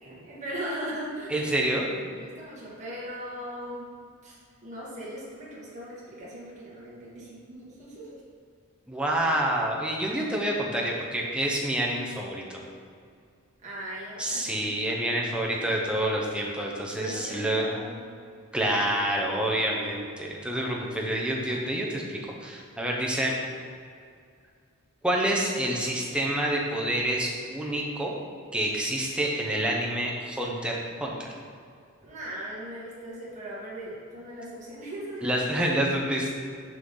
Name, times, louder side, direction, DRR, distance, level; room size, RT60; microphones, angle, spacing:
voice 1, 0.0-1.4 2.1-3.9 4.2-4.4 4.6-8.2 13.6-14.6 15.0-15.4 17.0-18.1 32.0-35.4, right 1 dB, 35° right, -7 dB, 1.7 m, -39 dB
voice 2, 1.3-1.9 8.9-12.6 14.2-17.7 18.5-23.3 25.0-28.1 28.5-31.3 35.2-36.3, right 1 dB, 5° right, -2 dB, 0.9 m, -28 dB
6.5 x 5.7 x 3.9 m, 2.2 s
head